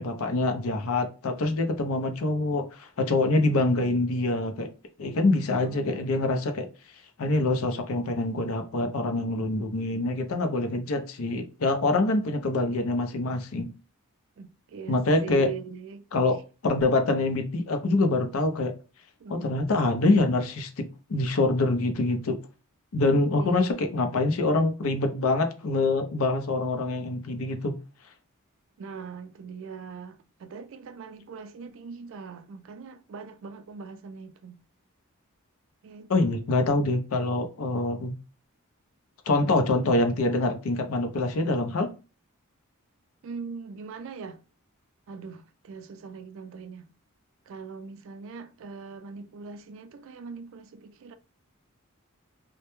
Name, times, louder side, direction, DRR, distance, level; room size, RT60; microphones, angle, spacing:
voice 1, 0.0-4.7 5.0-6.7 7.2-13.7 14.9-15.5 16.1-16.4 16.6-18.7 19.3-22.4 22.9-27.7 36.1-38.1 39.3-41.9, left 2 dB, 65° left, 0.5 m, -25 dB
voice 2, 3.5-4.0 5.4-6.1 12.1-12.2 12.6-12.8 14.4-16.1 19.2-19.5 23.1-23.7 28.8-34.6 35.8-36.4 43.2-44.4 45.1-46.9 47.5-51.1, right 5 dB, 60° right, 0.3 m, -41 dB
2.1 x 2.1 x 2.9 m
head